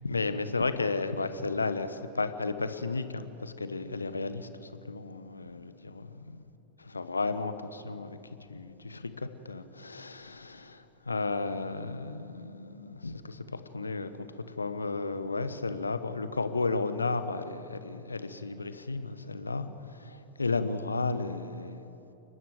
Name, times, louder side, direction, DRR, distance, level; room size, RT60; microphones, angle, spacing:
voice 1, 0.0-6.1 6.8-8.2 8.5-21.9, left 3 dB, 80° left, 11 dB, 1.1 m, -33 dB
29.5 x 12.5 x 7.8 m, 2.9 s
figure-of-eight pair, 90°, 0 cm